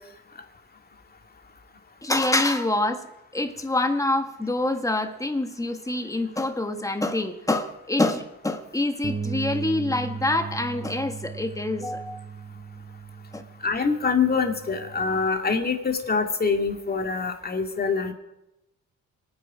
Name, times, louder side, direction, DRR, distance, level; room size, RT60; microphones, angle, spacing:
voice 1, 2.0-3.0 3.3-12.2 13.3-13.4, left 2 dB, 10° left, 7 dB, 1.7 m, -26 dB
Bass guitar, 9.0-15.3, right 6 dB, 25° right, 0.9 m, -37 dB
voice 2, 13.6-18.1, left 5 dB, 30° left, 4 dB, 2.3 m, -25 dB
26.5 x 9.6 x 5.0 m, 0.92 s
cardioid pair, 90°, 30 cm